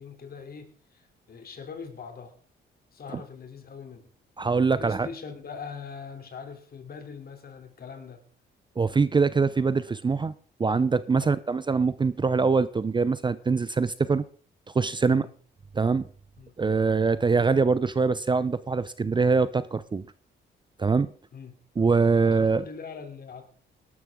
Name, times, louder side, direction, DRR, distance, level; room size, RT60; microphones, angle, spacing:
voice 1, 0.0-2.4 2.9-4.1 4.8-8.2 11.1-11.3 15.1-15.3 16.4-16.5 21.3-21.5 22.2-23.5, left 6 dB, 50° left, 6 dB, 3.3 m, -42 dB
voice 2, 4.4-5.1 8.8-10.3 10.6-14.2 14.7-15.3 15.7-16.1 16.6-20.0 20.8-21.1 21.8-22.6, right 4 dB, 25° right, 16 dB, 0.6 m, -23 dB
18.0 x 12.5 x 3.7 m, 0.43 s
cardioid pair, 90°, 20 cm